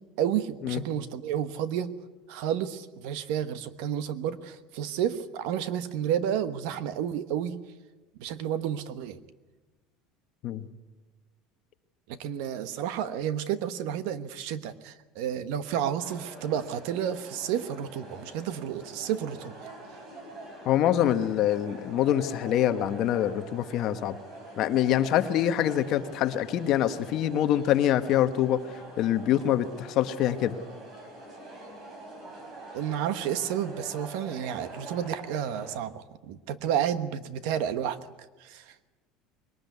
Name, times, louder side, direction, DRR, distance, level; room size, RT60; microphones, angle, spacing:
voice 1, 0.2-1.9 2.3-7.6 8.2-9.2 12.1-19.5 32.7-38.0 38.4-38.7, right 9 dB, 60° right, 13 dB, 1.2 m, -31 dB
sound 1, 16.0-35.8, right 2 dB, 30° right, 3.8 m, -45 dB
voice 2, 20.6-24.2 24.6-28.6 29.0-30.6, left 11 dB, 40° left, 10 dB, 1.1 m, -25 dB
21.5 x 19.0 x 9.4 m, 1.2 s
cardioid pair, 175°, 0 cm